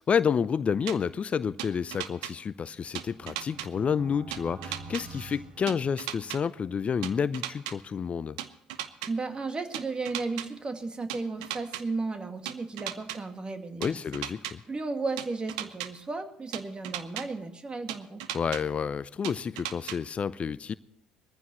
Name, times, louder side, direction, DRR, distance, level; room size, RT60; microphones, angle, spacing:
voice 1, 0.0-8.4 13.8-14.6 18.3-20.8, left 7 dB, 35° left, 0.5 m, -29 dB
sound 1, 0.9-1.0 1.6-2.3 2.9-3.7 4.3-5.0 5.7-6.4 7.0-7.7 8.4-9.1 9.7-10.5 11.1-11.8 12.5-13.2 13.8-14.5 15.2-15.9 16.5-17.2 17.9-18.6 19.2-20.0, right 13 dB, 75° right, 0.9 m, -35 dB
sound 2, 2.6-6.5, right 3 dB, 45° right, 2.1 m, -46 dB
voice 2, 9.1-13.8 14.7-18.2, right 3 dB, 25° right, 2.1 m, -34 dB
21.5 x 14.5 x 3.1 m
hypercardioid pair, 55°, 3 cm